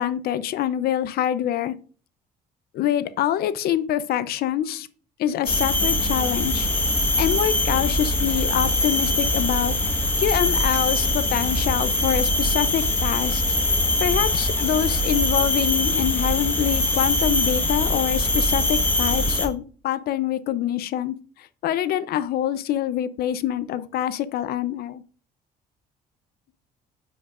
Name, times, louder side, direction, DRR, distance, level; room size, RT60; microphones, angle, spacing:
voice 1, 0.0-1.7 2.7-4.9 5.2-6.7 7.2-9.7 10.2-13.4 14.0-25.0, left 11 dB, 65° left, 14 dB, 0.6 m, -25 dB
sound 1, 5.4-19.5, left 1 dB, 15° left, 1.4 m, -22 dB
9.4 x 5.0 x 2.5 m, 0.40 s
cardioid pair, 110°, 17 cm